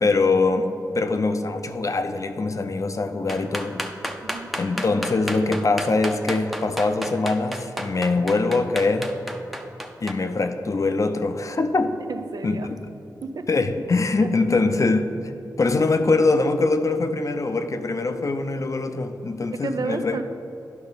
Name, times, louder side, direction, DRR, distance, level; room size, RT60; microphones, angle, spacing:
voice 1, 0.0-3.9 4.6-9.1 10.0-12.0 12.4-12.8 13.5-15.1 15.6-20.2, left 3 dB, 45° left, 8 dB, 0.6 m, -23 dB
sound 1, 3.3-10.1, equal, ahead, 0.7 m, -31 dB
voice 2, 4.2-4.5 12.1-12.7 13.2-13.5 14.2-14.3 19.5-20.2, right 4 dB, 60° right, 8 dB, 0.5 m, -31 dB
10.5 x 5.5 x 4.0 m, 2.9 s
cardioid pair, 65°, 7 cm